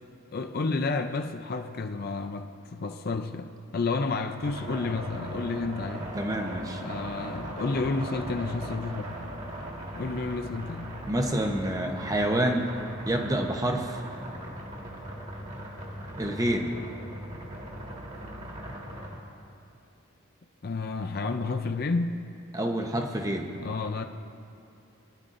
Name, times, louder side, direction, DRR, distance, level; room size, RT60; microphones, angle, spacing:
voice 1, 0.3-6.1 6.8-9.1 10.0-11.0 20.6-22.2 23.6-24.0, left 3 dB, 45° left, 7 dB, 0.5 m, -31 dB
sound 1, 4.4-19.2, right 1 dB, 35° right, 1.7 m, -39 dB
voice 2, 6.1-6.8 11.1-12.7 13.1-14.0 16.2-16.7 22.5-23.5, right 1 dB, 15° right, 2 dB, 0.8 m, -28 dB
23.0 x 11.5 x 2.6 m, 2.5 s
head